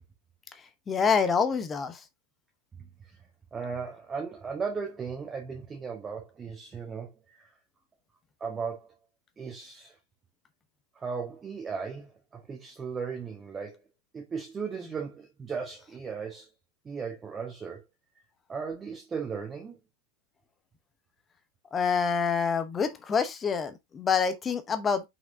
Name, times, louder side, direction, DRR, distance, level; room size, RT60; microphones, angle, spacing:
voice 1, 0.9-2.0 21.7-25.0, left 6 dB, 20° left, 0.9 m, -26 dB
voice 2, 3.5-7.1 8.4-8.9 9.4-9.9 10.9-13.8 14.1-16.5 16.8-17.8 18.5-19.8, right 5 dB, 20° right, 1.5 m, -36 dB
5.9 x 5.3 x 3.6 m
figure-of-eight pair, 90°, 0 cm